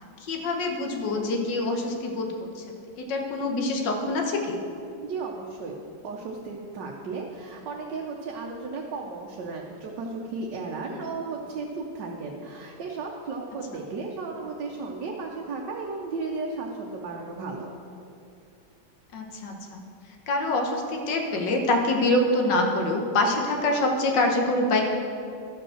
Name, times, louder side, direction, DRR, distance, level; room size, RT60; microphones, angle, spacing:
voice 1, 0.2-2.3 2.6-2.7 3.0-4.6 19.1-19.8 20.3-24.8, left 2 dB, 85° left, 2 dB, 1.8 m, -25 dB
voice 2, 5.0-17.7, right 3 dB, 80° right, 0 dB, 1.5 m, -34 dB
12.5 x 5.2 x 6.4 m, 2.6 s
omnidirectional pair, 1.9 m